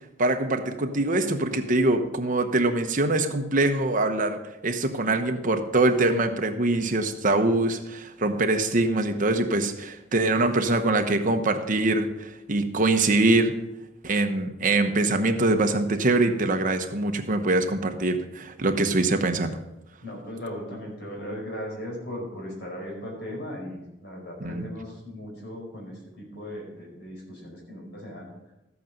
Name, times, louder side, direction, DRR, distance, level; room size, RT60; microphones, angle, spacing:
voice 1, 0.2-13.6 14.0-19.6 24.4-24.7, right 2 dB, 45° right, 6 dB, 1.1 m, -23 dB
voice 2, 20.0-28.3, equal, 60° left, -1 dB, 4.9 m, -37 dB
13.5 x 8.5 x 5.3 m, 0.94 s
head